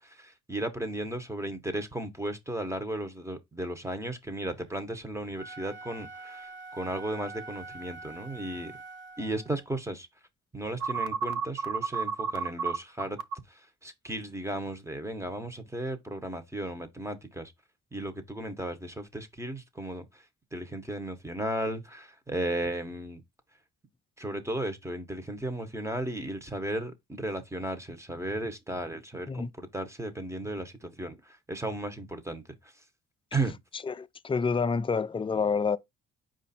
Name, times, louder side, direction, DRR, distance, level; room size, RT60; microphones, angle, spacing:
voice 1, 0.0-8.7 9.2-10.1 10.5-13.2 13.5-17.5 17.9-20.2 20.5-23.2 24.2-32.7 33.3-33.5, right 1 dB, 10° right, 0.9 m, -35 dB
Wind instrument woodwind instrument, 5.3-9.7, right 3 dB, 40° right, 0.8 m, -45 dB
sound 1, 10.8-13.3, right 6 dB, 75° right, 0.6 m, -30 dB
voice 2, 33.8-35.8, left 5 dB, 20° left, 0.4 m, -28 dB
4.8 x 2.5 x 4.1 m
cardioid pair, 90°, 30 cm